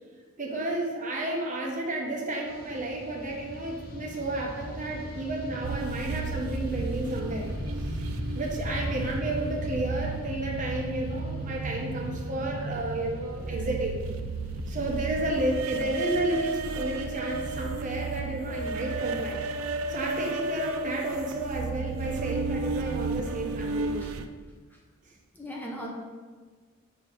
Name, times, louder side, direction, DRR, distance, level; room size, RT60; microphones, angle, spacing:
voice 1, 0.4-7.5 8.3-14.0 14.7-19.4 19.9-24.0, right 2 dB, 40° right, -1 dB, 0.9 m, -31 dB
Fixed-wing aircraft airplane, 2.4-19.9, left 1 dB, 45° left, 0.6 m, -39 dB
sound 1, 5.6-24.3, right 3 dB, 90° right, 0.4 m, -34 dB
voice 2, 25.3-25.9, equal, 10° left, -2 dB, 0.7 m, -39 dB
6.6 x 2.9 x 5.1 m, 1.4 s
head